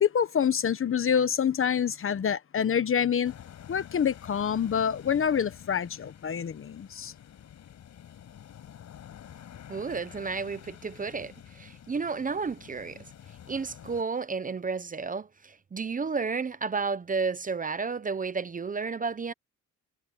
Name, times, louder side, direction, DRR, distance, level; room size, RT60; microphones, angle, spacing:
voice 1, 0.0-3.3 3.7-7.1, left 8 dB, 45° left, 1.3 m, -26 dB
sound 1, 3.2-14.0, left 10 dB, 65° left, 5.3 m, -49 dB
voice 2, 9.7-13.0 13.5-19.3, right 5 dB, 25° right, 0.8 m, -32 dB
cardioid pair, 90°, 30 cm